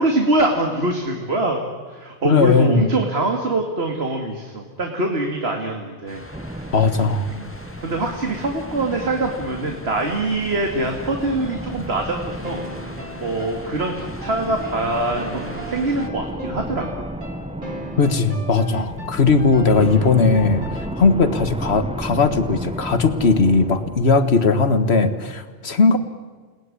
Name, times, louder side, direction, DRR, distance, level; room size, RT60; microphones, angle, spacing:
voice 1, 0.0-1.6 1.9-6.3 6.5-6.7 7.0-7.5 7.8-17.1 18.7-18.9 19.2-19.3, right 2 dB, 70° right, 3 dB, 2.5 m, -24 dB
voice 2, 2.2-2.9 6.7-7.3 18.0-26.0, left 4 dB, 75° left, 10 dB, 1.9 m, -18 dB
sound 1, 6.1-16.1, left 1 dB, 10° left, 1.9 m, -41 dB
sound 2, 6.3-24.8, right 1 dB, 5° right, 0.7 m, -34 dB
sound 3, 12.4-21.3, right 1 dB, 50° right, 3.1 m, -37 dB
29.0 x 19.0 x 9.9 m, 1.5 s
omnidirectional pair, 1.1 m